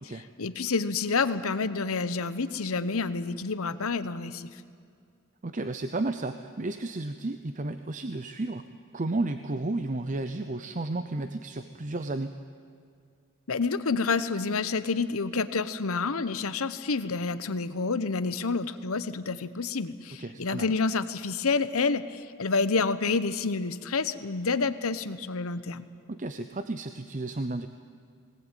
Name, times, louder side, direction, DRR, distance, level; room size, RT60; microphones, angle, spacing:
voice 1, 0.0-4.5 13.5-25.9, left 4 dB, 75° left, 13 dB, 0.9 m, -29 dB
voice 2, 5.4-8.7 8.9-12.3 20.2-20.7 26.1-27.7, right 2 dB, 35° right, 9 dB, 0.6 m, -32 dB
20.0 x 19.0 x 9.2 m, 2.3 s
head